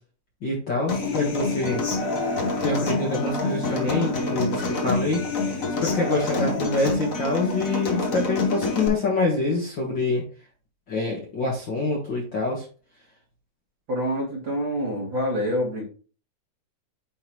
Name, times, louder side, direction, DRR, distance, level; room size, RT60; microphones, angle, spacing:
voice 1, 0.4-1.8 2.6-10.2 10.9-12.6, left 3 dB, 45° left, -3 dB, 1.8 m, -26 dB
Human voice / Acoustic guitar, 0.9-8.9, left 2 dB, 60° left, 0.8 m, -27 dB
voice 2, 13.9-15.8, equal, 40° right, -4 dB, 3.1 m, -26 dB
9.5 x 3.9 x 3.0 m, 0.38 s
omnidirectional pair, 3.6 m